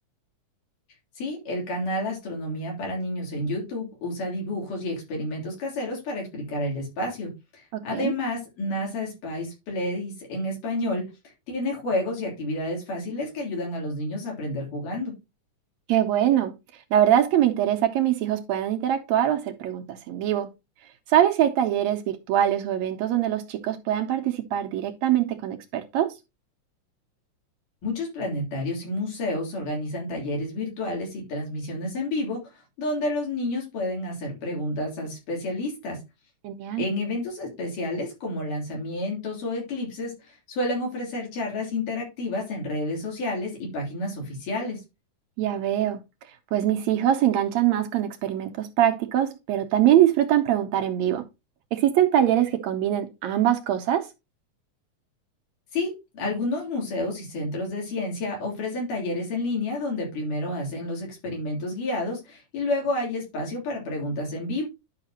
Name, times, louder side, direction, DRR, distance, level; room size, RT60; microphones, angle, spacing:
voice 1, 1.2-11.0 11.5-15.1 27.8-32.4 32.8-36.0 36.8-44.8 55.7-64.7, left 1 dB, 85° left, 4.9 m, -30 dB
voice 2, 15.9-16.6 16.9-20.5 21.1-26.1 36.4-36.9 45.4-46.0 46.5-51.2 51.7-54.1, right 11 dB, 75° right, 1.7 m, -23 dB
10.5 x 5.7 x 2.9 m
omnidirectional pair, 3.6 m